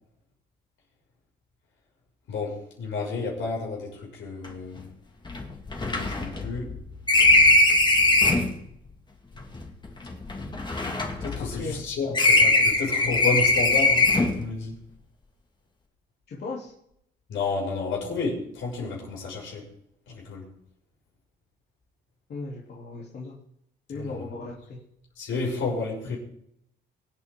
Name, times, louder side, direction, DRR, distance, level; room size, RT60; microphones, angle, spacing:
voice 1, 2.3-4.9 5.8-6.7 11.2-14.1 14.4-14.8 17.3-19.7 20.1-20.5 23.9-24.4 25.2-26.2, left 3 dB, 75° left, 6.5 m, -31 dB
sound 1, 4.4-4.5 4.8-4.9 5.3-8.6 9.4-11.8 12.1-14.5, left 2 dB, 20° left, 2.3 m, -21 dB
voice 2, 16.3-16.7 22.3-23.3 23.9-24.8 26.0-26.1, left 3 dB, 55° left, 3.4 m, -37 dB
24.5 x 8.9 x 3.9 m
cardioid pair, 90°, 20 cm